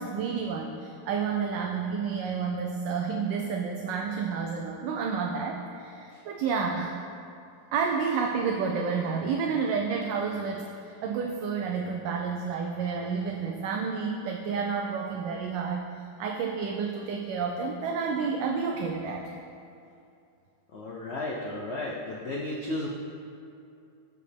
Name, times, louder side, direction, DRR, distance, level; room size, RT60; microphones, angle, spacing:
voice 1, 0.0-6.9 7.7-19.3, right 5 dB, 80° right, 1 dB, 1.2 m, -30 dB
voice 2, 20.7-22.9, left 2 dB, 80° left, -2 dB, 0.6 m, -33 dB
12.5 x 5.2 x 3.3 m, 2.6 s
omnidirectional pair, 2.0 m